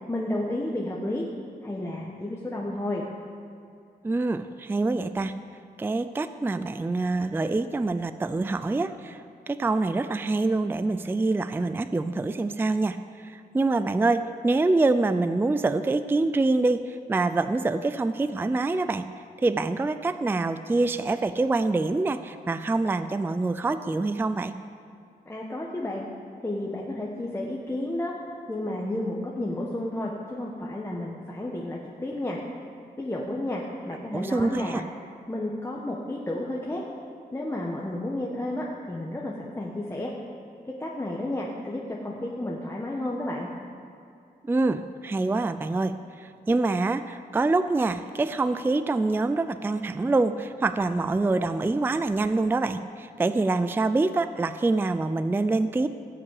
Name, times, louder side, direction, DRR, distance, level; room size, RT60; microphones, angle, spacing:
voice 1, 0.1-1.3 1.6-3.0 25.3-26.1 26.4-28.1 28.5-32.4 33.0-34.9 35.3-36.8 37.3-40.1 40.6-43.5, left 1 dB, 15° left, -3 dB, 1.1 m, -32 dB
voice 2, 4.0-5.3 5.8-19.1 19.4-24.5 34.1-34.8 44.4-55.9, right 3 dB, 15° right, 12 dB, 0.3 m, -25 dB
16.0 x 5.9 x 8.2 m, 2.4 s
wide cardioid pair, 135°, 16 cm